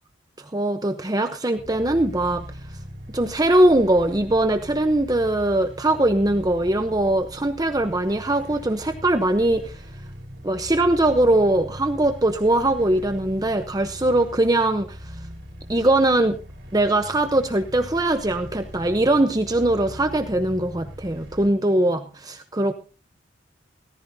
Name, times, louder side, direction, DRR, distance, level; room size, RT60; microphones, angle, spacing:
voice 1, 0.4-2.4 3.1-9.8 10.4-15.2 15.7-16.4 16.7-22.7, right 1 dB, 20° right, 7 dB, 0.9 m, -21 dB
sound 1, 1.6-21.5, equal, 75° right, 3.7 m, -40 dB
18.0 x 14.5 x 2.8 m, 0.33 s
head